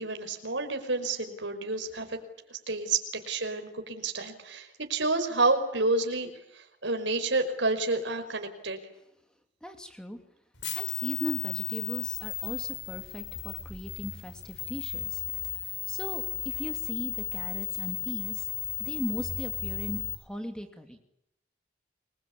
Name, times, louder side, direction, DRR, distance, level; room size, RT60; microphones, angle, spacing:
voice 1, 0.0-2.2 2.5-8.8, right 3 dB, 80° right, 5 dB, 5.3 m, -29 dB
voice 2, 9.6-10.2 10.7-15.2 15.9-18.5 18.8-21.0, equal, 5° left, 6 dB, 2.9 m, -38 dB
sound 1, 10.6-20.1, left 10 dB, 85° left, 5.8 m, -35 dB
29.5 x 22.0 x 8.7 m, 0.81 s
head